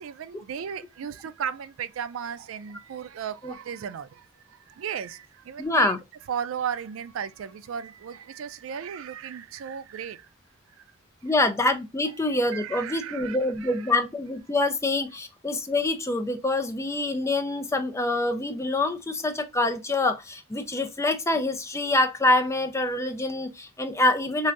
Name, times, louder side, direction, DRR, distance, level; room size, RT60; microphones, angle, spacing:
voice 1, 0.0-6.0 6.3-10.3 12.5-13.7, right 8 dB, 80° right, 0.4 m, -35 dB
voice 2, 5.6-6.0 11.2-24.5, left 2 dB, 15° left, 0.5 m, -25 dB
3.2 x 2.6 x 2.4 m
head